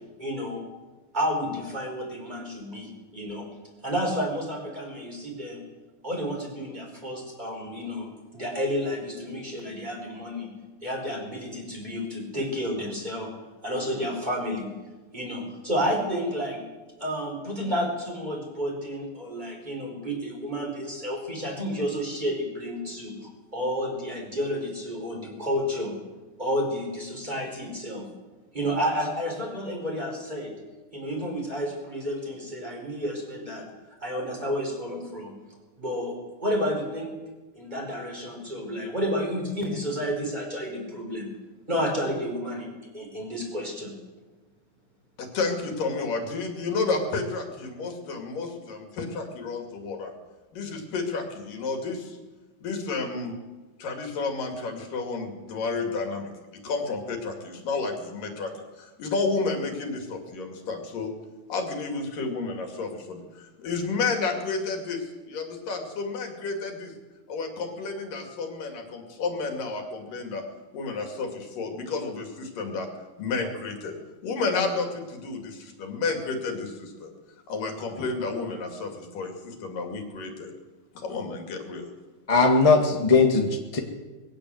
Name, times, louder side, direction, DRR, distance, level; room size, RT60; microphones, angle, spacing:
voice 1, 0.2-0.7 1.1-3.5 3.8-5.6 6.0-10.5 10.8-13.3 13.6-14.7 15.1-16.6 17.0-25.9 26.4-28.1 28.5-30.5 30.9-33.7 34.0-35.3 35.8-36.1 36.4-37.1 37.5-41.3 41.7-43.9, equal, 10° right, 0 dB, 5.1 m, -31 dB
voice 2, 45.2-50.2 50.5-52.2 52.6-53.4 53.8-56.3 56.6-58.5 58.8-61.1 61.5-66.9 67.3-70.4 70.7-72.9 73.2-73.9 74.2-77.1 77.5-80.5 81.0-81.9, left 4 dB, 75° left, 4 dB, 4.2 m, -31 dB
voice 3, 82.3-83.8, left 4 dB, 20° left, 2 dB, 0.8 m, -19 dB
21.5 x 16.5 x 7.9 m, 1.2 s
omnidirectional pair, 3.9 m